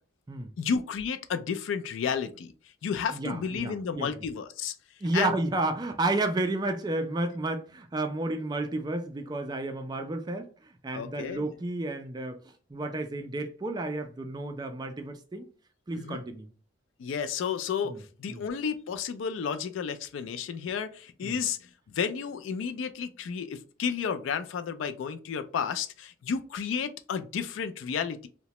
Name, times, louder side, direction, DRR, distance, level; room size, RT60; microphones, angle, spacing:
voice 1, 0.6-2.5 2.8-4.7 5.1-5.3 10.9-11.5 16.0-16.2 17.0-28.3, left 6 dB, 80° left, 0.3 m, -32 dB
voice 2, 3.1-4.1 5.0-15.5 15.9-16.5 17.8-18.0 18.3-18.4 21.2-21.4, right 2 dB, 20° right, 0.3 m, -31 dB
2.8 x 2.1 x 2.9 m
head